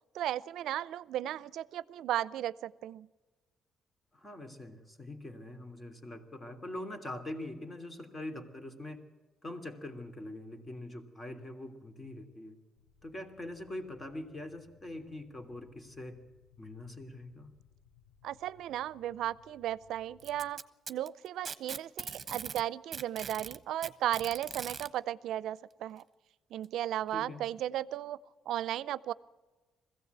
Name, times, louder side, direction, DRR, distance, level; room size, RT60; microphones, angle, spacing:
voice 1, 0.1-3.1 18.2-20.6 20.9-26.0 26.5-28.2 28.5-29.1, right 12 dB, 80° right, 19 dB, 0.5 m, -35 dB
voice 2, 4.1-9.0 9.4-12.6 13.0-16.2 16.6-17.5 27.1-27.4, left 1 dB, 25° left, 5 dB, 3.0 m, -43 dB
sound 1, 12.8-20.5, left 8 dB, 65° left, 5.2 m, -64 dB
Packing tape duct tape, 20.2-22.6 22.9-24.9 26.0-26.1 26.6-26.7 27.6-27.7, right 6 dB, 40° right, 1.1 m, -41 dB
21.5 x 16.0 x 8.2 m, 1.3 s
cardioid pair, 90°, 0 cm